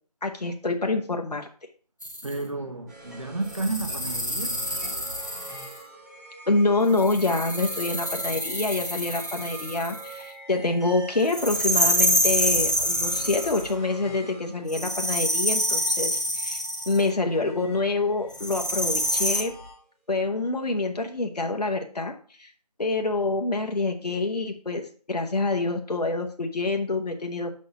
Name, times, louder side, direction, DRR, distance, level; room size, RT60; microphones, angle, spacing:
voice 1, 0.2-1.5 6.5-19.5 20.1-22.5 22.8-27.5, left 3 dB, 75° left, 1.0 m, -26 dB
sound 1, 2.0-2.3 3.5-5.8 6.9-10.1 11.3-13.7 14.7-17.0 18.3-19.4, equal, 25° left, 0.7 m, -27 dB
voice 2, 2.2-4.6, right 2 dB, 50° right, 1.3 m, -31 dB
sound 2, 2.9-20.1, right 1 dB, 25° right, 2.6 m, -43 dB
6.3 x 4.2 x 5.8 m
figure-of-eight pair, 180°, 21 cm